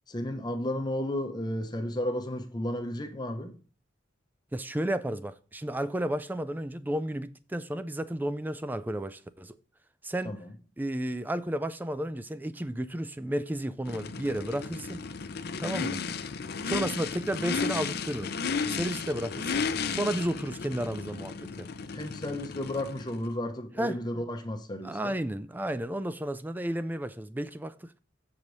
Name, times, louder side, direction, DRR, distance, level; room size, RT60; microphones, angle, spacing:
voice 1, 0.1-3.5 10.2-10.5 21.9-25.2, left 1 dB, 20° left, 0.8 m, -33 dB
voice 2, 4.5-9.6 10.0-10.3 10.8-15.0 15.6-16.0 16.6-18.3 18.7-21.7 23.8-24.0 24.8-27.9, right 1 dB, 10° right, 0.3 m, -32 dB
Race car auto racing / Idling / Accelerating revving vroom, 13.8-23.3, left 5 dB, 55° left, 0.5 m, -34 dB
7.3 x 4.8 x 5.2 m
head